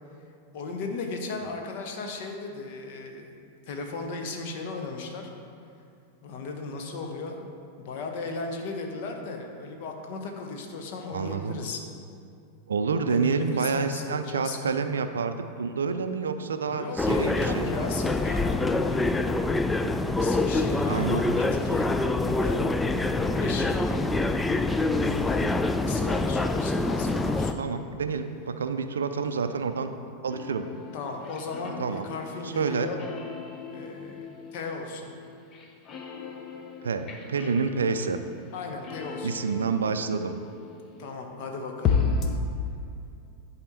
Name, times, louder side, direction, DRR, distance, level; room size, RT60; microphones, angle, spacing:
voice 1, 0.5-3.3 3.7-5.3 6.2-7.5 7.8-11.8 13.1-14.9 16.6-19.0 19.7-22.6 23.2-23.8 24.9-27.9 30.9-33.0 33.7-35.1 38.5-39.4 41.0-42.0, left 3 dB, 50° left, 3 dB, 1.0 m, -36 dB
voice 2, 11.1-11.6 12.7-17.7 20.8-21.2 27.6-29.9 30.2-30.7 31.8-32.1 32.4-32.9 36.8-38.2 39.2-40.4, right 5 dB, 70° right, 9 dB, 0.4 m, -28 dB
sound 1, 17.0-27.5, left 2 dB, 10° left, 0.3 m, -25 dB
sound 2, 30.3-41.1 41.8-42.4, left 5 dB, 30° left, 0.7 m, -34 dB
10.5 x 4.2 x 4.2 m, 2.4 s
figure-of-eight pair, 90°, 0 cm